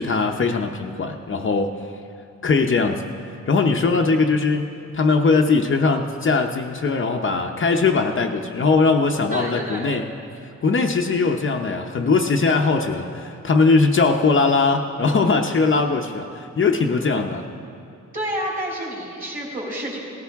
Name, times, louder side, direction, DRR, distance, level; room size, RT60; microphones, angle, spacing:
voice 1, 0.0-1.7 2.4-10.1 10.4-17.4, left 4 dB, 40° left, 3 dB, 0.7 m, -20 dB
voice 2, 9.3-9.9 18.1-20.0, equal, 30° right, -4 dB, 3.6 m, -29 dB
18.0 x 14.5 x 3.5 m, 2.6 s
wide cardioid pair, 125°, 30 cm